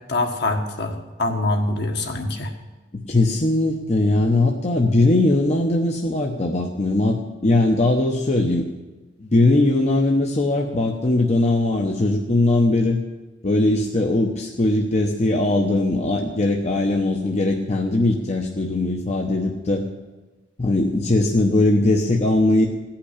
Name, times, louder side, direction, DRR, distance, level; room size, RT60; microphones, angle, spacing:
voice 1, 0.1-2.5, left 2 dB, 60° left, 3 dB, 1.6 m, -24 dB
voice 2, 3.1-8.6 9.2-13.0 13.4-19.8 20.6-22.7, left 2 dB, 35° left, 1 dB, 0.9 m, -20 dB
16.0 x 5.9 x 9.9 m, 1.2 s
head